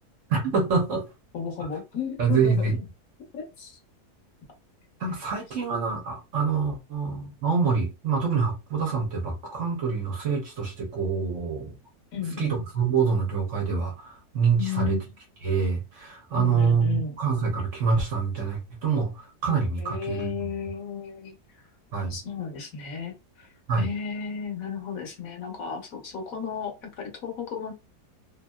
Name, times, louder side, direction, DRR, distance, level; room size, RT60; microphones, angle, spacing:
voice 1, 0.3-1.1 2.2-2.8 5.0-11.8 12.4-15.0 15.4-20.3 21.9-22.1 23.7-23.9, right 5 dB, 60° right, 1.0 m, -26 dB
voice 2, 1.3-2.8 3.3-3.7 12.1-12.6 14.6-15.1 16.3-17.2 19.8-21.6 22.1-27.7, left 7 dB, 65° left, 1.1 m, -34 dB
2.8 x 2.5 x 2.2 m
omnidirectional pair, 1.7 m